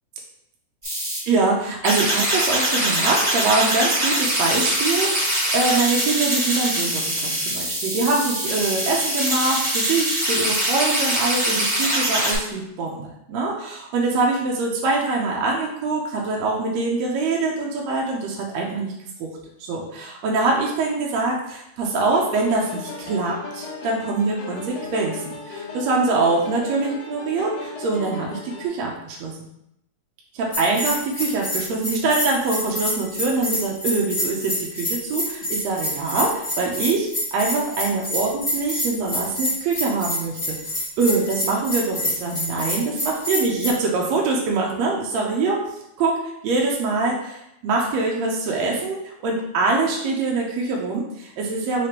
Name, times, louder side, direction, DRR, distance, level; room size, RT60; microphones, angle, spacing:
sound 1, 0.8-1.2 1.8-12.3, right 1 dB, 20° right, 0.8 m, -23 dB
voice 1, 1.3-18.9 19.2-19.3 19.6-29.3 30.3-40.6 41.0-45.6 46.0-51.9, right 3 dB, 75° right, -2 dB, 1.7 m, -24 dB
sound 2, 22.0-28.7, left 3 dB, 70° left, 1.9 m, -36 dB
Bell, 30.5-43.7, left 1 dB, 45° left, 0.5 m, -27 dB
4.9 x 3.1 x 2.9 m, 0.80 s
omnidirectional pair, 3.5 m